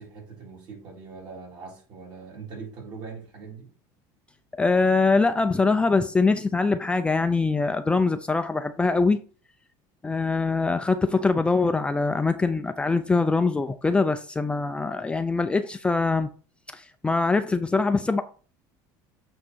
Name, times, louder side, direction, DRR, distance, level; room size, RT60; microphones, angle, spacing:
voice 1, 0.0-3.7, right 5 dB, 50° right, 3.8 m, -41 dB
voice 2, 4.6-9.2 10.0-16.3 16.7-18.2, left 3 dB, 10° left, 0.4 m, -23 dB
8.3 x 3.9 x 4.5 m
cardioid pair, 135°, 9 cm